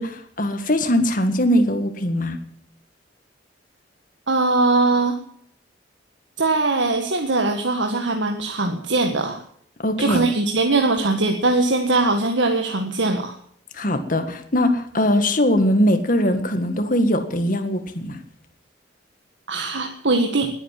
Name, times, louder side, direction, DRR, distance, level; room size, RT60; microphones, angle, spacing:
voice 1, 0.0-2.4 9.8-10.2 13.7-18.2, left 1 dB, 45° left, 7 dB, 1.9 m, -21 dB
voice 2, 4.3-5.2 6.4-9.4 10.0-13.4 19.5-20.5, right 3 dB, 80° right, 4 dB, 1.7 m, -21 dB
20.5 x 9.1 x 7.6 m, 0.63 s
head